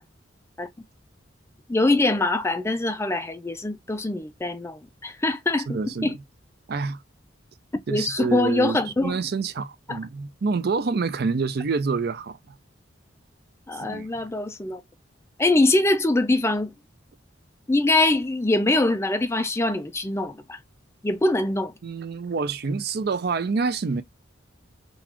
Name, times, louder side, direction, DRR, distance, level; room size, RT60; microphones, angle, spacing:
voice 1, 1.7-6.1 7.9-9.1 9.9-10.0 13.7-14.8 15.4-16.7 17.7-20.6 21.0-21.7, left 2 dB, 15° left, 0.4 m, -23 dB
voice 2, 5.7-6.1 6.7-7.0 7.9-12.4 13.8-14.1 21.8-24.0, right 4 dB, 55° right, 0.5 m, -27 dB
3.9 x 2.4 x 2.9 m
head